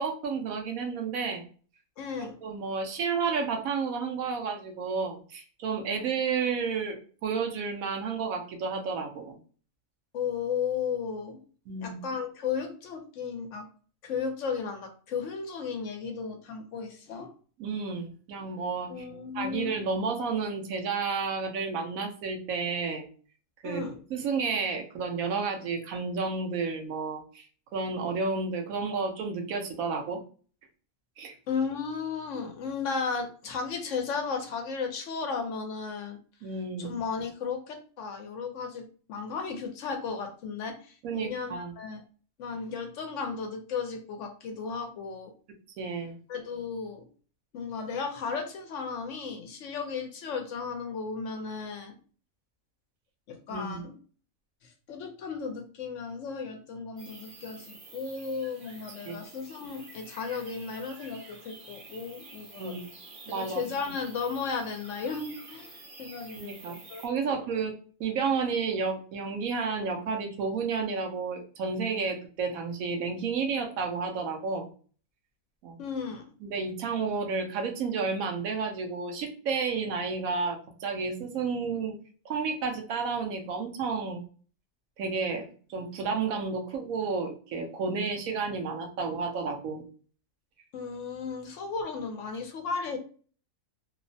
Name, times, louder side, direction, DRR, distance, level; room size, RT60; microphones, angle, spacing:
voice 1, 0.0-1.4 2.2-9.4 11.7-12.0 17.6-19.1 19.3-23.0 23.6-27.5 27.7-30.2 31.2-31.4 36.4-36.9 41.0-41.7 45.8-46.2 53.5-53.8 59.1-59.2 62.6-62.8 63.3-63.6 66.4-66.7 67.0-67.7 68.0-74.7 75.6-75.8 76.4-82.0 82.2-84.2 85.0-89.8, right 5 dB, 80° right, 4 dB, 1.1 m, -31 dB
voice 2, 2.0-2.4 10.1-11.4 11.8-13.7 14.0-17.3 18.9-19.8 23.6-24.0 31.5-36.2 36.8-38.8 39.1-42.0 42.4-45.3 46.3-47.0 47.5-52.0 53.3-53.9 54.6-62.8 63.3-67.4 75.8-76.2 90.7-93.0, left 5 dB, 70° left, 4 dB, 0.9 m, -35 dB
sound 1, 57.0-67.1, right 3 dB, 50° right, 0.7 m, -49 dB
2.9 x 2.0 x 2.6 m, 0.41 s
omnidirectional pair, 1.5 m